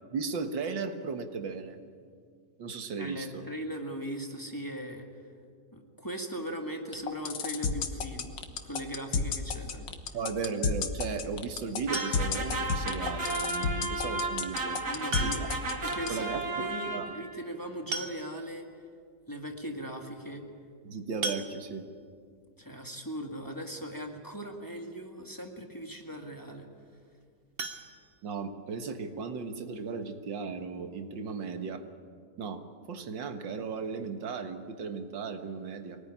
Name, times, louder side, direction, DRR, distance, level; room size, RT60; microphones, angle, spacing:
voice 1, 0.1-1.8 2.6-3.4 10.1-14.8 15.2-15.5 16.1-16.4 16.9-17.1 20.8-21.9 28.2-31.8 32.4-32.6 32.9-36.0, right 5 dB, 85° right, 7 dB, 2.1 m, -36 dB
voice 2, 3.0-5.1 5.7-9.9 14.9-15.5 15.8-18.7 19.3-20.4 22.6-26.7, equal, 10° left, 3 dB, 2.0 m, -39 dB
sound 1, 6.9-16.1, left 5 dB, 80° left, 2.0 m, -30 dB
sound 2, 11.9-12.6 14.0-14.1 15.1-15.7 16.0-16.1 16.4-16.5 17.5-17.6 17.9-18.6 19.2-19.3 19.6-19.8 21.2-22.1 27.5-28.7 29.1-29.2 29.6-29.7 30.1-30.2, right 3 dB, 40° right, 1.1 m, -38 dB
sound 3, 11.9-17.4, right 2 dB, 60° right, 2.7 m, -34 dB
24.0 x 19.0 x 9.9 m, 2.2 s
omnidirectional pair, 2.0 m